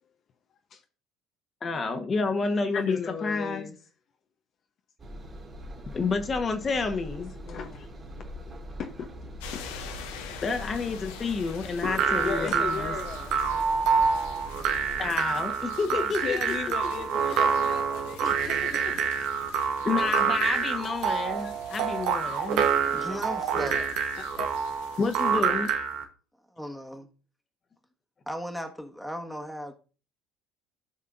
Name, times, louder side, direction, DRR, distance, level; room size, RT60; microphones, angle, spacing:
voice 1, 1.6-3.7 5.9-7.3 10.4-12.9 15.0-16.7 17.1-17.5 19.8-22.7 25.0-25.7, left 4 dB, 35° left, 6 dB, 1.3 m, -30 dB
voice 2, 2.7-3.8 7.3-7.9 8.8-9.1 9.5-9.6 11.8-13.4 15.9-19.0 21.4-21.5 23.0-23.8 24.4-24.5, left 7 dB, 50° left, 5 dB, 0.9 m, -36 dB
Engine, 5.0-15.2, equal, 35° right, 2.8 m, -42 dB
sound 1, 9.4-25.4, left 6 dB, 80° left, 1.2 m, -46 dB
sound 2, 11.8-26.0, right 6 dB, 65° right, 1.1 m, -27 dB
voice 3, 22.9-23.9 26.5-27.1 28.3-29.7, equal, ahead, 4 dB, 1.6 m, -36 dB
16.0 x 5.4 x 2.6 m, 0.37 s
hypercardioid pair, 70°, 0 cm